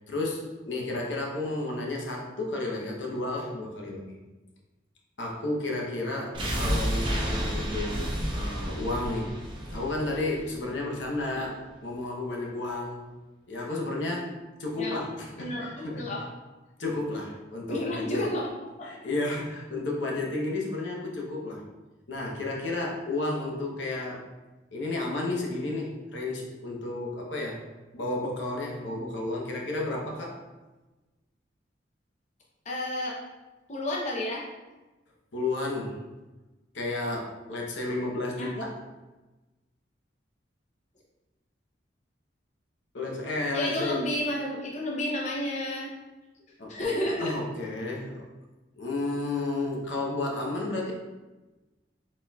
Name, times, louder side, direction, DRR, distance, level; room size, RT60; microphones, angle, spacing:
voice 1, 0.1-4.2 5.2-8.0 8.3-9.3 9.7-13.1 13.5-16.1 16.8-18.2 18.8-21.6 22.1-24.3 24.7-27.7 27.9-30.4 35.3-36.0 36.7-38.8 42.9-44.0 46.6-48.2 48.8-50.9, left 2 dB, 75° left, -1 dB, 0.8 m, -32 dB
sound 1, 6.3-11.3 11.6-11.7, equal, 25° right, 0.7 m, -31 dB
voice 2, 15.4-16.2 17.7-18.5 18.8-19.0 32.7-33.2 33.7-34.5 37.9-38.0 38.4-38.5 43.5-45.9 46.7-47.3, left 1 dB, 40° left, -4 dB, 0.6 m, -31 dB
4.2 x 4.0 x 2.3 m, 1.1 s
head